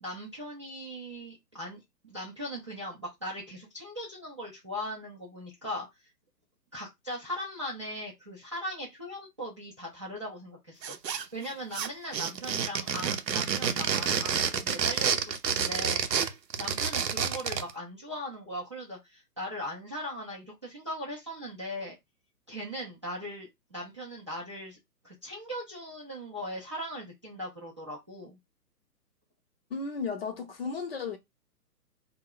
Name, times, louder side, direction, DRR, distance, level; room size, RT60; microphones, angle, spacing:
voice 1, 0.0-5.9 6.7-16.2 16.6-22.0 22.5-24.8 25.0-28.4, equal, 20° right, 0.4 m, -39 dB
sound 1, 10.8-11.5 11.7-17.7, right 7 dB, 85° right, 0.7 m, -29 dB
voice 2, 29.7-31.2, left 5 dB, 40° left, 0.6 m, -34 dB
2.1 x 2.1 x 3.7 m
figure-of-eight pair, 135°, 49 cm